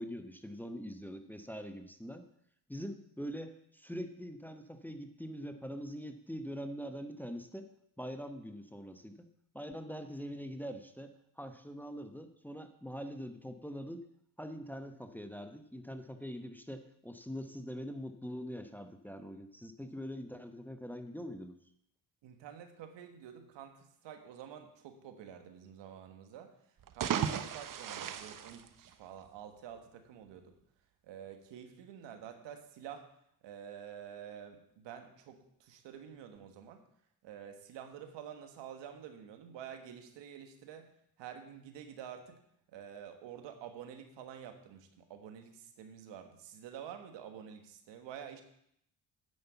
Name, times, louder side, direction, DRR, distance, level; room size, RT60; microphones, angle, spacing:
voice 1, 0.0-2.2 2.7-7.7 8.0-9.3 9.5-14.1 14.4-21.6, equal, 5° left, 7 dB, 0.9 m, -43 dB
voice 2, 22.2-26.5 26.9-30.6 31.0-33.1 33.4-36.8 37.2-40.9 41.2-42.4 42.7-48.4, right 9 dB, 75° right, 6 dB, 1.5 m, -49 dB
sound 1, 26.8-29.4, right 8 dB, 45° right, 0.9 m, -36 dB
9.6 x 5.7 x 7.0 m, 0.71 s
supercardioid pair, 60°, 44 cm